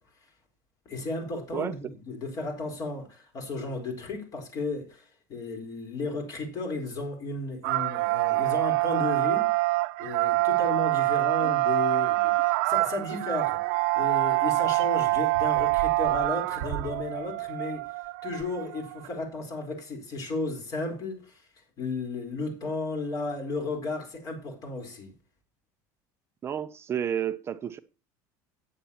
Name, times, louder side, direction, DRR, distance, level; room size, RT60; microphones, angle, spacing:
voice 1, 0.9-9.7 10.0-17.9 18.2-21.4 21.8-25.1, left 3 dB, 40° left, 4.2 m, -34 dB
sound 1, 7.6-19.1, right 21 dB, 75° right, 0.6 m, -26 dB
voice 2, 26.4-27.8, right 9 dB, 30° right, 0.6 m, -31 dB
14.5 x 9.2 x 2.9 m
cardioid pair, 140°, 9 cm